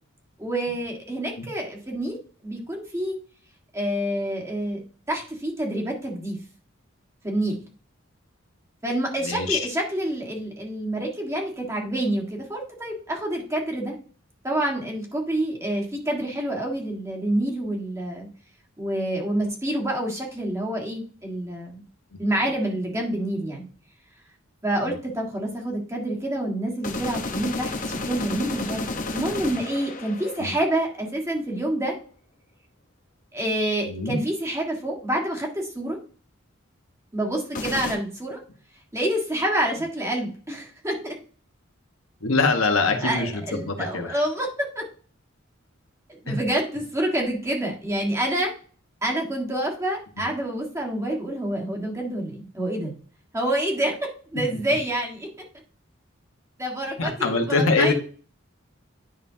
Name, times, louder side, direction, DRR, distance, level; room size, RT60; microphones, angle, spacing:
voice 1, 0.4-3.2 3.7-4.8 5.1-6.4 7.2-7.6 8.8-14.0 14.4-18.3 18.8-21.8 22.2-23.6 24.6-32.0 33.3-36.0 37.1-38.4 38.9-41.2 43.0-44.8 46.1-48.5 49.0-52.9 53.3-54.0 54.3-55.3 56.6-57.9, right 1 dB, 15° right, -1 dB, 1.7 m, -27 dB
voice 2, 9.2-9.6 22.1-22.2 30.4-30.5 33.8-34.2 42.2-44.2 46.3-46.4 50.2-50.3 57.0-57.9, left 3 dB, 85° left, 4 dB, 1.4 m, -24 dB
sound 1, 26.8-30.9 37.5-38.0, left 3 dB, 40° left, 1.0 m, -31 dB
10.5 x 5.5 x 2.8 m, 0.42 s
head